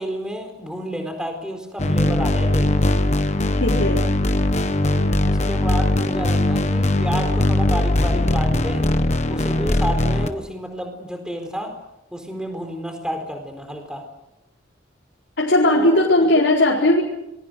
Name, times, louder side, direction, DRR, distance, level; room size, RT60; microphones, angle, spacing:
voice 1, 0.0-2.9 5.2-8.8 9.3-11.7 12.1-14.0 15.7-16.3, equal, 5° right, 4 dB, 4.3 m, -30 dB
sound 1, 1.8-10.3, left 1 dB, 35° left, 1.3 m, -20 dB
voice 2, 3.6-4.0 15.4-17.0, left 1 dB, 75° left, -4 dB, 4.4 m, -17 dB
27.5 x 22.5 x 6.4 m, 0.88 s
head